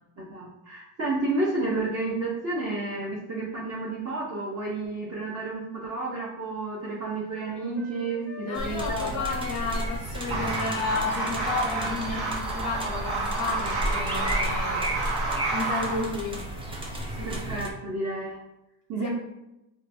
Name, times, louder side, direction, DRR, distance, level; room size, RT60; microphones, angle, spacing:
voice 1, 0.2-9.3 17.2-18.4 18.9-19.1, right 2 dB, 30° right, -6 dB, 0.7 m, -31 dB
Wind instrument woodwind instrument, 6.8-14.3, left 5 dB, 5° left, 0.8 m, -42 dB
voice 2, 8.4-14.9 15.5-16.5 17.2-17.7 19.0-19.1, left 3 dB, 45° left, 2 dB, 0.5 m, -32 dB
sound 1, 8.5-17.7, right 1 dB, 10° right, 0.3 m, -33 dB
sound 2, 10.3-16.0, right 3 dB, 65° right, 1.2 m, -30 dB
3.8 x 2.3 x 2.6 m, 0.92 s
cardioid pair, 100°, 50 cm